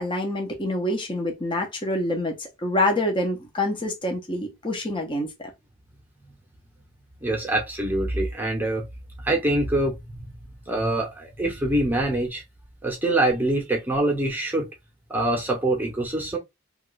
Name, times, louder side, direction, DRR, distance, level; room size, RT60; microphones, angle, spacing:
voice 1, 0.0-5.5, left 1 dB, 25° left, 0.7 m, -26 dB
voice 2, 7.2-8.9 9.2-10.0 10.7-12.4 12.8-14.7 15.1-16.4, right 1 dB, 10° right, 0.9 m, -24 dB
3.1 x 2.4 x 3.1 m
head